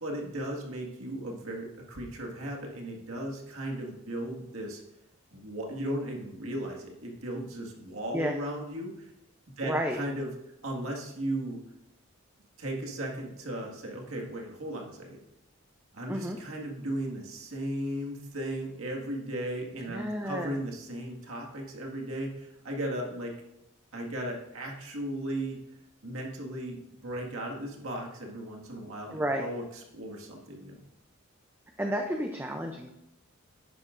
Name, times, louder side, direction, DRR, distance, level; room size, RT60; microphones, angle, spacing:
voice 1, 0.0-4.8 5.3-9.1 9.6-10.3 10.6-11.6 12.6-15.2 15.9-23.3 23.9-25.6 26.0-29.6 29.9-30.8, right 1 dB, 70° right, 0 dB, 1.9 m, -36 dB
voice 2, 9.6-10.0 16.1-16.4 19.9-20.6 29.1-29.5 31.8-32.9, equal, 10° right, 3 dB, 0.5 m, -31 dB
11.5 x 9.7 x 2.6 m, 0.85 s
head